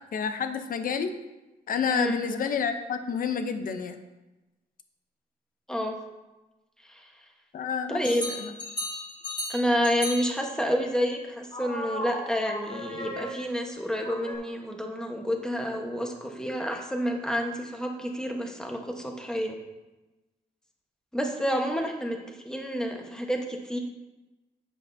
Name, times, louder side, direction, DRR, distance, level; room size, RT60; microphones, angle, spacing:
voice 1, 0.1-1.1 1.7-4.0 7.5-8.0 8.3-8.5, left 6 dB, 55° left, 8 dB, 0.8 m, -29 dB
voice 2, 7.9-8.2 9.5-19.6 21.1-22.2 22.4-23.8, equal, 5° left, 2 dB, 1.2 m, -29 dB
sound 1, 8.0-10.4 11.5-13.6 14.0-14.3, left 1 dB, 30° left, 1.8 m, -36 dB
9.5 x 8.4 x 2.7 m, 1.1 s
cardioid pair, 125°, 17 cm